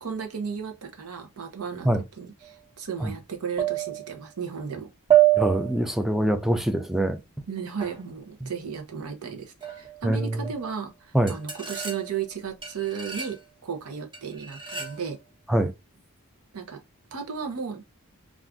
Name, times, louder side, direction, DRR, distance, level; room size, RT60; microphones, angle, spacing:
voice 1, 0.0-1.9 2.2-4.9 7.5-15.2 16.5-16.8 17.1-17.8, right 6 dB, 75° right, 0.7 m, -34 dB
sound 1, 2.4-2.5 3.6-4.2 5.1-5.9 7.8-8.0 9.6-10.1 10.4-10.7 11.3-12.3 12.6-13.4 14.1-15.1, right 13 dB, 20° right, 1.0 m, -26 dB
voice 2, 5.4-7.2 8.4-8.5 10.0-10.4 11.1-11.3 15.5-15.7, right 1 dB, ahead, 0.3 m, -24 dB
2.4 x 2.4 x 3.4 m
head